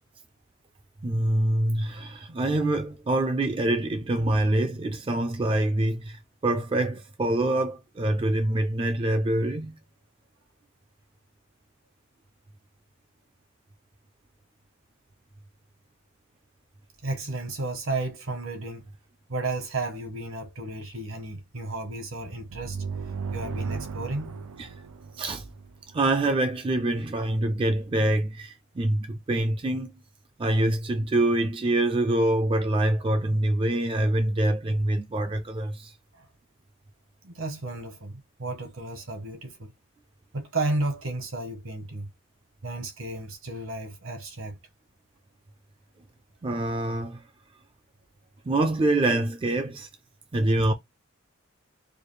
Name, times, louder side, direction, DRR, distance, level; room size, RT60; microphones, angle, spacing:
voice 1, 1.0-9.8 24.6-24.7 25.1-25.5 25.9-29.9 30.4-35.9 46.4-47.3 48.5-49.9 50.3-50.7, right 1 dB, 25° right, 0.3 m, -25 dB
voice 2, 17.0-18.8 19.3-22.8 23.3-24.4 36.1-36.3 37.2-39.7 40.3-42.1 42.6-44.6, right 2 dB, 70° right, 1.1 m, -33 dB
sound 1, 22.5-26.1, right 5 dB, 85° right, 0.5 m, -35 dB
4.8 x 2.3 x 3.1 m
head